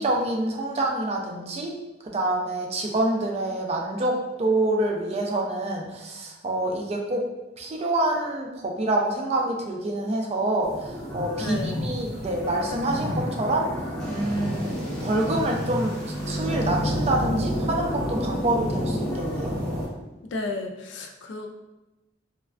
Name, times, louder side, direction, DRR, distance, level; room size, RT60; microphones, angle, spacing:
voice 1, 0.0-1.7 2.0-7.2 7.6-13.7 14.1-19.6, right 1 dB, 35° right, 1 dB, 0.4 m, -27 dB
sound 1, 10.6-19.8, equal, 5° left, 0.8 m, -29 dB
voice 2, 11.4-11.8 20.3-21.5, left 3 dB, 75° left, 4 dB, 0.3 m, -32 dB
3.2 x 2.1 x 2.4 m, 1.0 s
head